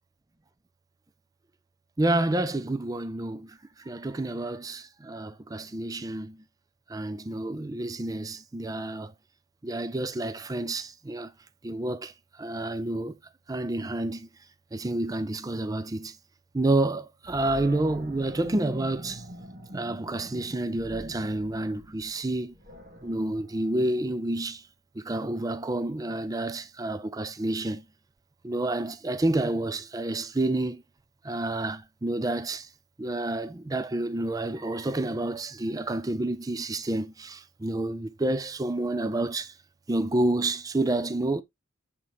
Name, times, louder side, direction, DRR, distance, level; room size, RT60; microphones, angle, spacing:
voice 1, 2.0-3.6 3.8-6.4 6.9-9.1 9.6-11.3 11.6-13.2 13.5-14.3 14.7-16.2 16.5-19.2 19.7-22.5 23.0-24.6 25.0-27.8 28.4-30.8 31.2-32.7 33.0-39.5 39.9-41.4, right 2 dB, 20° right, 0.4 m, -29 dB
Animal, 17.2-24.4, equal, 45° right, 1.6 m, -44 dB
8.3 x 3.7 x 3.2 m
head